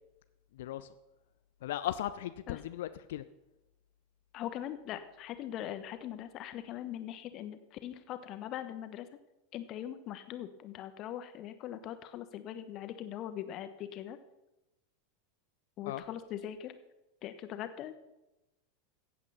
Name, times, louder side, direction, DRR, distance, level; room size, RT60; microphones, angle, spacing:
voice 1, 0.5-0.9 1.6-3.3 15.9-16.0, left 13 dB, 60° left, 13 dB, 0.5 m, -37 dB
voice 2, 4.3-9.1 9.5-14.2 15.8-16.7 17.2-18.0, left 11 dB, 40° left, 11 dB, 1.2 m, -41 dB
15.5 x 8.4 x 5.7 m, 0.98 s
figure-of-eight pair, 85°, 0 cm